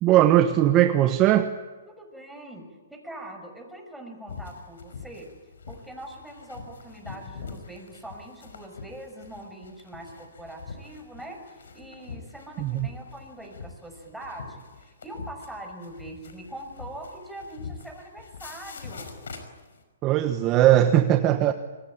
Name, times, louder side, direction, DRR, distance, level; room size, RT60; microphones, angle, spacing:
voice 1, 0.0-1.5 12.6-12.9 20.0-21.5, right 12 dB, 30° right, 8 dB, 1.2 m, -19 dB
voice 2, 1.9-5.3 5.7-19.3 21.5-21.6, right 1 dB, ahead, 2 dB, 6.1 m, -42 dB
sound 1, 4.3-19.8, left 5 dB, 80° left, 5.3 m, -43 dB
26.0 x 22.5 x 8.8 m, 1.3 s
hypercardioid pair, 140°, 0 cm